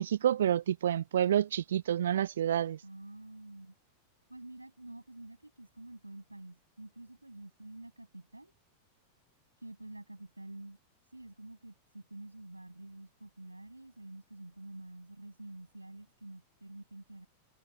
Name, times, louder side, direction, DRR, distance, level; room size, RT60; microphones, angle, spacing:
voice 1, 0.0-2.8, right 10 dB, 65° right, 0.9 m, -28 dB
voice 2, 2.8-3.7 4.3-8.5 9.6-10.8 11.0-17.3, right 1 dB, 85° right, 7.6 m, -48 dB
figure-of-eight pair, 90°, 0 cm